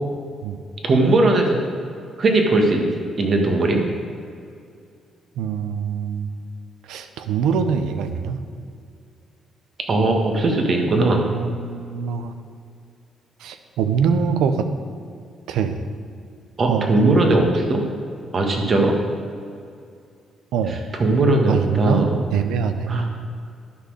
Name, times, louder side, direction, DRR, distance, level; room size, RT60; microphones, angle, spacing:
voice 1, 0.8-1.6 2.2-2.9 3.2-3.8 9.9-11.2 16.6-17.8 18.3-18.9 20.9-22.1 22.9-23.1, right 2 dB, 45° right, 2 dB, 1.6 m, -18 dB
voice 2, 5.4-6.3 6.9-8.4 10.9-12.3 13.4-14.7 15.5-15.8 16.7-17.4 20.5-20.8 21.5-22.0 22.3-22.9, right 6 dB, 90° right, 9 dB, 0.6 m, -23 dB
11.5 x 4.4 x 6.4 m, 2.4 s
cardioid pair, 90°, 0 cm